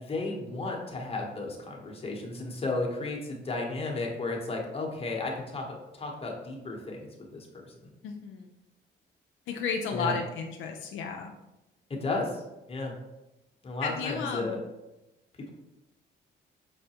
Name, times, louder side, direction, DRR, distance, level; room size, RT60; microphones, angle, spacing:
voice 1, 0.0-5.6 6.0-7.5 7.8-7.9 9.9-10.2 12.0-12.3 12.7-12.9 13.6-14.6, left 3 dB, 30° left, 0 dB, 0.9 m, -33 dB
voice 2, 8.0-8.5 9.5-11.4 13.8-14.6, left 5 dB, 80° left, 2 dB, 0.4 m, -33 dB
5.5 x 2.1 x 2.9 m, 0.95 s
cardioid pair, 90°, 20 cm